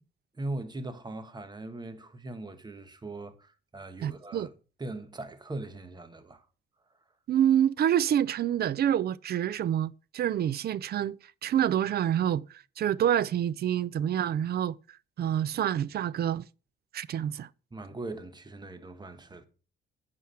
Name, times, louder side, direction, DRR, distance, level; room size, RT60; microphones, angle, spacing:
voice 1, 0.4-4.5 4.8-6.4 17.7-19.5, right 2 dB, 20° right, 1.4 m, -40 dB
voice 2, 4.0-4.5 7.3-11.2 11.4-12.4 12.8-14.8 15.2-16.4 16.9-17.5, right 10 dB, 55° right, 0.4 m, -27 dB
9.4 x 4.9 x 5.7 m
cardioid pair, 90°, 20 cm